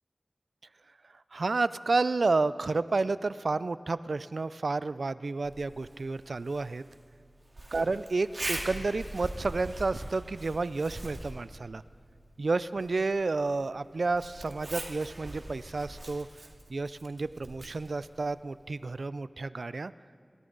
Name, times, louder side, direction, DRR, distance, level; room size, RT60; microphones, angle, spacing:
voice 1, 1.3-6.8 7.7-11.8 12.4-16.3 16.7-19.9, right 3 dB, 90° right, 16 dB, 0.3 m, -30 dB
Zipper (clothing), 5.4-19.0, right 1 dB, 60° right, 2.1 m, -43 dB
26.5 x 13.5 x 3.9 m, 2.3 s
wide cardioid pair, 45°, 0 cm